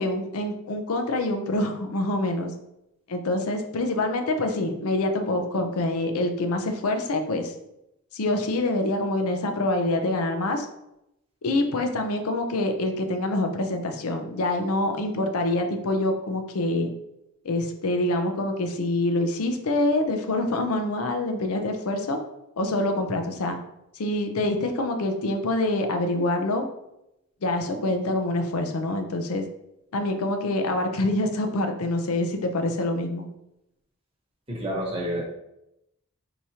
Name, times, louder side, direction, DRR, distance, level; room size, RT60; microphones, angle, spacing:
voice 1, 0.0-2.5 3.1-7.5 8.1-10.7 11.4-16.9 17.4-22.2 22.6-23.6 23.9-26.7 27.4-29.4 29.9-33.2, left 2 dB, 85° left, 5 dB, 0.5 m, -26 dB
voice 2, 34.5-35.3, equal, 25° right, -2 dB, 1.0 m, -29 dB
4.8 x 2.9 x 2.8 m, 0.86 s
head